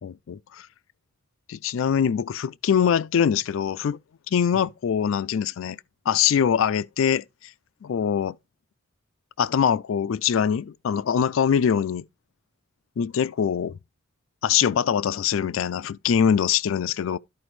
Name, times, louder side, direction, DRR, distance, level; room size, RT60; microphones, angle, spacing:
voice 1, 0.0-0.7 1.5-4.0 4.3-5.8 6.1-7.2 7.8-8.4 9.4-12.1 13.0-13.8 14.4-17.2, left 8 dB, 80° left, 0.4 m, -23 dB
13.0 x 4.9 x 3.1 m
head